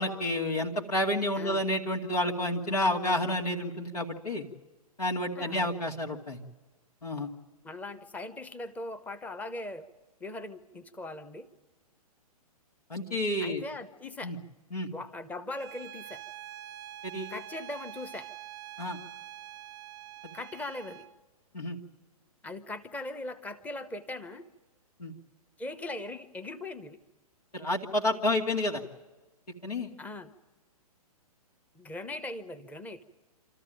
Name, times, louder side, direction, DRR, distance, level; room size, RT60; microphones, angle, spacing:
voice 1, 0.0-4.4 5.0-6.4 7.0-7.3 12.9-13.6 14.2-14.4 14.7-14.9 17.0-17.3 18.8-19.0 20.2-20.3 21.5-21.8 25.0-25.1 27.5-28.8 29.6-29.9, left 1 dB, 85° left, -1 dB, 2.5 m, -30 dB
voice 2, 1.3-1.6 5.3-5.7 7.6-9.9 10.2-11.5 13.4-14.4 14.8-16.2 17.3-18.3 20.3-21.1 22.4-24.4 25.6-27.0 30.0-30.3 31.7-33.0, left 2 dB, 10° left, 10 dB, 0.9 m, -40 dB
Bowed string instrument, 15.5-21.1, right 12 dB, 20° right, 0.6 m, -45 dB
26.5 x 14.0 x 9.1 m, 1.2 s
figure-of-eight pair, 120°, 20 cm